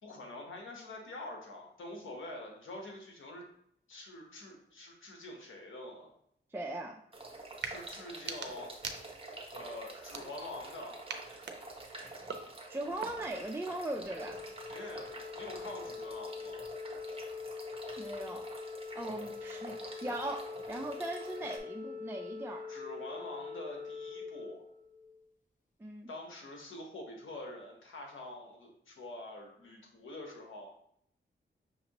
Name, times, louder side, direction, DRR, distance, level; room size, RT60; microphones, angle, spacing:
voice 1, 0.0-3.4 3.9-6.1 7.6-8.7 9.5-11.0 14.7-16.6 22.7-24.6 26.1-30.8, left 2 dB, 90° left, 0 dB, 1.1 m, -46 dB
voice 2, 6.5-7.0 12.7-14.4 18.0-18.5 18.9-22.7 25.8-26.1, right 1 dB, 10° right, 1 dB, 0.4 m, -39 dB
sound 1, 7.1-21.6, right 2 dB, 30° right, 0.8 m, -48 dB
sound 2, 7.5-7.8 8.1-9.4 10.0-10.7 11.1-13.4, right 5 dB, 65° right, 0.5 m, -44 dB
Organ, 14.1-25.2, left 5 dB, 40° left, 0.6 m, -44 dB
5.8 x 2.7 x 2.9 m, 0.69 s
wide cardioid pair, 85°, 20 cm